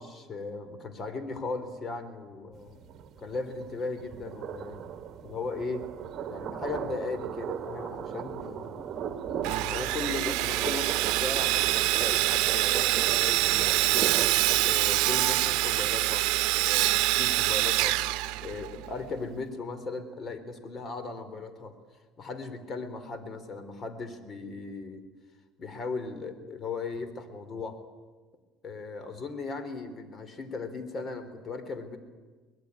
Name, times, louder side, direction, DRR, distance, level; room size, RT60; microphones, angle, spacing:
voice 1, 0.0-2.8 3.2-4.8 5.2-5.9 6.3-8.8 9.6-14.1 14.6-16.3 16.5-18.0 18.4-21.8 22.2-25.0 25.6-27.8 28.6-32.0, left 3 dB, 35° left, 11 dB, 3.4 m, -37 dB
sound 1, 2.5-19.5, right 8 dB, 45° right, 1.9 m, -38 dB
Sawing, 9.4-18.9, right 18 dB, 80° right, 0.8 m, -25 dB
23.0 x 20.0 x 9.5 m, 1.3 s
cardioid pair, 110°, 0 cm